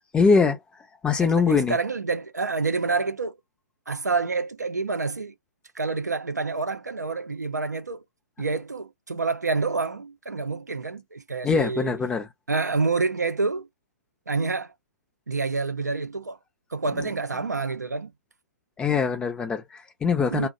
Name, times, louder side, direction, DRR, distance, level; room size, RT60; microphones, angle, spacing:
voice 1, 0.1-0.6 1.0-1.8 11.4-12.3 18.8-20.5, left 5 dB, 10° left, 0.5 m, -22 dB
voice 2, 1.2-3.4 3.9-5.3 5.7-8.0 8.4-12.0 12.5-13.7 14.3-14.7 15.3-16.4 16.7-18.1 20.3-20.5, right 4 dB, 85° right, 0.5 m, -28 dB
2.5 x 2.1 x 2.4 m
figure-of-eight pair, 120°, 9 cm